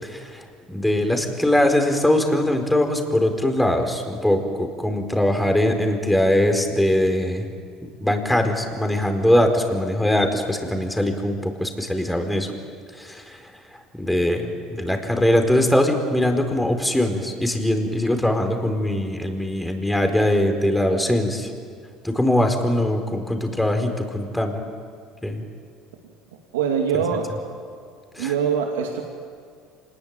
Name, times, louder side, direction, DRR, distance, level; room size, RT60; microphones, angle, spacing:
voice 1, 0.0-7.5 8.0-12.5 12.9-13.4 13.9-21.5 22.0-24.6 25.2-25.4 28.1-28.3, left 1 dB, 5° left, 5 dB, 4.6 m, -21 dB
voice 2, 26.5-27.3 28.2-29.0, right 7 dB, 85° right, 2 dB, 2.4 m, -23 dB
26.5 x 20.5 x 9.0 m, 2.2 s
hypercardioid pair, 80°, 0 cm